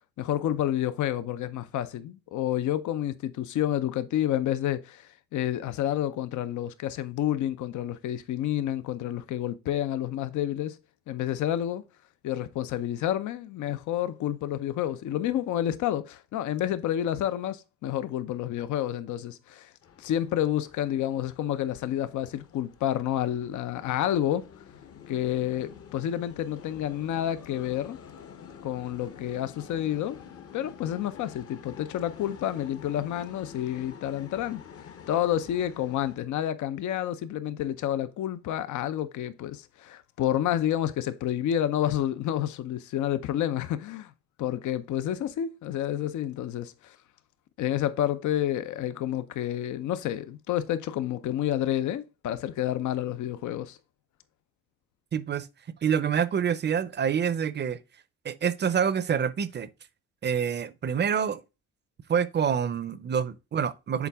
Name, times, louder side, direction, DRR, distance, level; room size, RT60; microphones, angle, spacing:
voice 1, 0.2-10.8 11.1-11.8 12.2-19.7 20.0-24.5 25.1-28.0 28.6-30.2 30.5-34.6 35.1-44.1 44.4-47.0 47.6-53.8, left 11 dB, 75° left, 0.6 m, -29 dB
sound 1, 19.8-36.2, left 8 dB, 50° left, 0.9 m, -48 dB
voice 2, 55.1-55.5 55.8-57.8 58.2-59.7 60.2-61.4 62.1-64.1, right 7 dB, 35° right, 0.6 m, -27 dB
7.1 x 4.1 x 3.4 m
cardioid pair, 90°, 30 cm